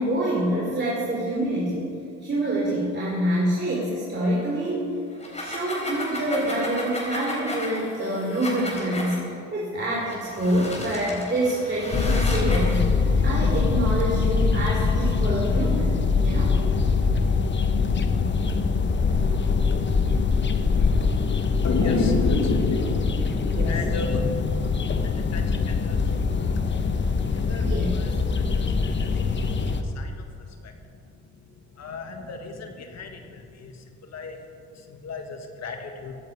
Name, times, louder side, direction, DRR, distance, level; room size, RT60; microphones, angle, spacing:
voice 1, 0.0-1.9 2.2-4.9 5.4-15.9 16.2-16.5 23.5-23.7 27.6-27.9, right 1 dB, 35° right, -5 dB, 3.1 m, -26 dB
sound 1, 5.1-9.2 10.0-12.8, left 1 dB, 20° left, 3.7 m, -34 dB
sound 2, 11.9-29.8, left 4 dB, 35° left, 1.0 m, -23 dB
voice 2, 21.6-29.1 29.6-30.8 31.2-31.5 31.7-34.5 34.7-36.1, left 3 dB, 60° left, 4 dB, 1.7 m, -32 dB
16.0 x 10.5 x 4.9 m, 2.5 s
cardioid pair, 90°, 30 cm